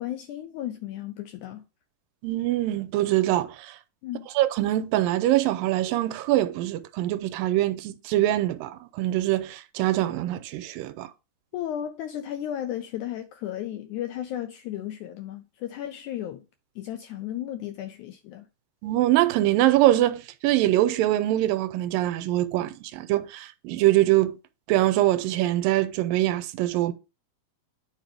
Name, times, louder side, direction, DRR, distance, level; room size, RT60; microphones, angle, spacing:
voice 1, 0.0-1.6 4.0-4.3 11.5-16.4 16.8-18.4, left 11 dB, 85° left, 1.7 m, -34 dB
voice 2, 2.2-3.7 4.4-11.1 18.8-24.4 24.7-26.9, right 15 dB, 90° right, 2.3 m, -23 dB
9.4 x 5.0 x 3.4 m
omnidirectional pair, 4.0 m